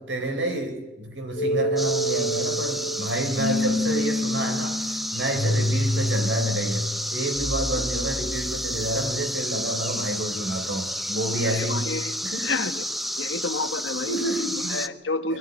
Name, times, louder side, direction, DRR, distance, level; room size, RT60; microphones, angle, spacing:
voice 1, 0.0-11.9 12.2-12.6 13.9-14.8 15.3-15.4, right 1 dB, 80° right, 4.1 m, -29 dB
sound 1, 1.4-9.2, equal, 50° left, 1.6 m, -28 dB
sound 2, 1.8-14.9, equal, ahead, 0.8 m, -31 dB
voice 2, 11.4-12.1 12.4-12.8 13.2-14.2 14.7-15.4, left 3 dB, 85° left, 1.3 m, -30 dB
21.5 x 15.0 x 9.7 m
head